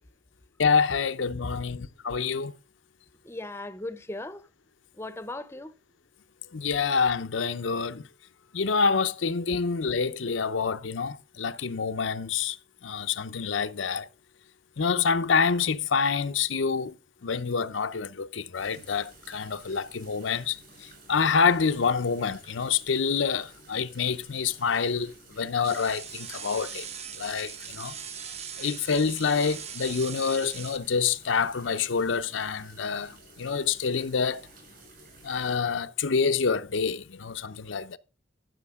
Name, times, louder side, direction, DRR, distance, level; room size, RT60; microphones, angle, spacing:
voice 1, 0.6-2.5 6.5-8.0 8.5-12.6 12.8-14.1 14.8-16.9 17.2-26.9 27.2-28.0 28.6-34.4 35.2-38.0, left 5 dB, 90° left, 0.7 m, -27 dB
voice 2, 3.2-4.5 4.9-5.7, left 2 dB, 15° left, 0.6 m, -37 dB
sound 1, 18.5-35.6, right 3 dB, 55° right, 6.1 m, -53 dB
sound 2, 25.6-30.8, right 7 dB, 35° right, 0.8 m, -40 dB
14.0 x 6.5 x 3.6 m
head